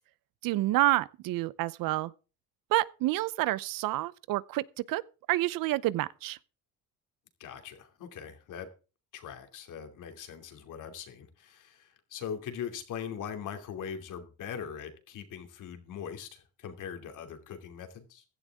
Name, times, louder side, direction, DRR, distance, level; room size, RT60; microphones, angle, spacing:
voice 1, 0.4-2.1 2.7-5.0 5.3-6.4, right 17 dB, 80° right, 0.7 m, -28 dB
voice 2, 7.4-8.7 9.1-18.2, left 7 dB, 65° left, 2.8 m, -41 dB
15.5 x 11.5 x 3.6 m
cardioid pair, 130°, 33 cm